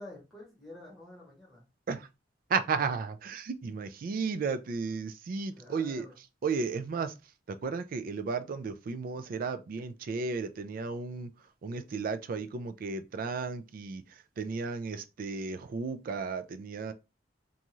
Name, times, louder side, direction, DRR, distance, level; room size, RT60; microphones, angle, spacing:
voice 1, 0.0-1.6 5.5-6.2, left 1 dB, ahead, 1.2 m, -49 dB
voice 2, 2.5-6.1 6.4-7.1 7.5-11.3 11.6-14.0 14.4-16.9, right 4 dB, 50° right, 0.3 m, -34 dB
2.6 x 2.3 x 3.0 m
head